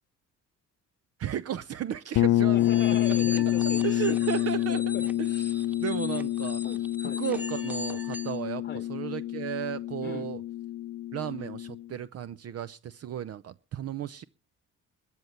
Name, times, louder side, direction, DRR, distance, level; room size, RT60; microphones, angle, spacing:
voice 1, 1.2-2.6 3.6-6.6 7.0-10.4 11.1-14.2, right 10 dB, 55° right, 0.6 m, -35 dB
sound 1, 2.1-11.8, left 14 dB, 75° left, 0.7 m, -28 dB
voice 2, 2.5-4.2 4.7-5.1 6.6-7.2 8.6-8.9 10.0-10.3, left 6 dB, 30° left, 0.9 m, -39 dB
sound 2, 2.6-8.4, left 1 dB, 5° right, 1.2 m, -40 dB
13.5 x 7.2 x 9.4 m
cardioid pair, 90°, 30 cm